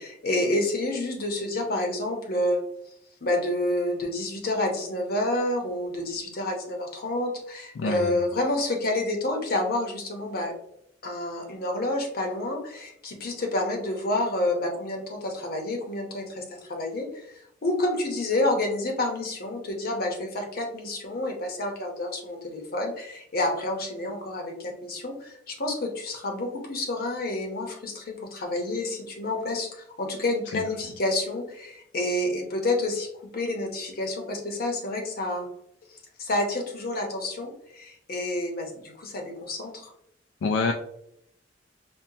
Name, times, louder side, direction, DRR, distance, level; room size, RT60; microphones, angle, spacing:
voice 1, 0.0-2.6 3.2-10.5 11.0-16.4 16.7-33.1 33.3-35.5 36.2-39.9, left 1 dB, 55° left, 2 dB, 0.8 m, -29 dB
voice 2, 7.8-8.2 30.5-30.6 40.4-40.7, left 4 dB, 75° left, 4 dB, 0.3 m, -26 dB
5.3 x 2.1 x 2.7 m, 0.74 s
head